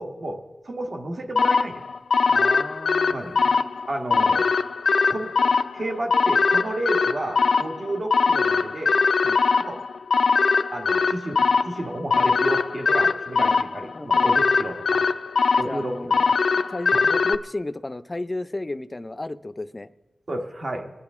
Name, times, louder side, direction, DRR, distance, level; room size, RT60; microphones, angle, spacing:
voice 1, 0.0-1.8 3.0-3.4 3.9-4.5 5.1-5.3 5.7-8.9 9.6-9.8 10.7-15.1 15.5-15.9 16.2-16.3 16.9-17.0 20.3-20.9, right 1 dB, 50° right, 3 dB, 1.3 m, -31 dB
sound 1, 1.4-17.4, left 4 dB, 85° left, 0.4 m, -22 dB
voice 2, 2.3-3.6 9.2-9.4 13.9-14.4 15.6-16.1 16.7-19.9, left 2 dB, 25° left, 12 dB, 0.4 m, -33 dB
22.5 x 10.0 x 3.6 m, 1.2 s
wide cardioid pair, 105°, 0 cm